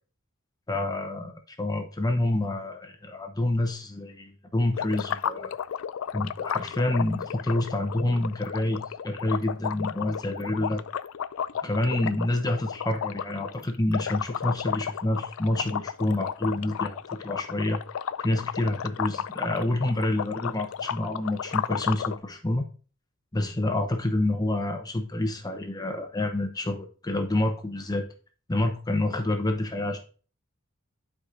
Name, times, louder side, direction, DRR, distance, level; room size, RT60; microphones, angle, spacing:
voice 1, 0.7-5.5 6.1-10.8 11.6-17.8 18.2-22.7 23.3-28.1 28.5-30.0, left 1 dB, 20° left, 4 dB, 0.8 m, -28 dB
sound 1, 4.7-22.2, left 8 dB, 85° left, 0.4 m, -33 dB
11.0 x 4.8 x 2.6 m, 0.38 s
head